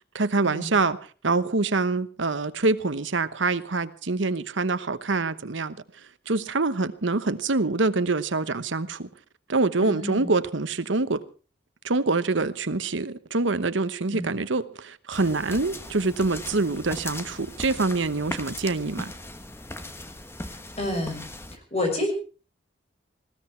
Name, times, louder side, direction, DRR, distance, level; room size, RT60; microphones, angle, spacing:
voice 1, 0.1-1.0 1.2-9.1 9.5-11.2 11.8-19.1, right 3 dB, 70° right, 1.0 m, -25 dB
voice 2, 9.8-10.3 14.1-14.3 20.8-22.1, left 1 dB, 35° left, 6.1 m, -29 dB
sound 1, 15.1-21.6, left 1 dB, 10° left, 1.1 m, -39 dB
19.5 x 16.5 x 4.5 m
head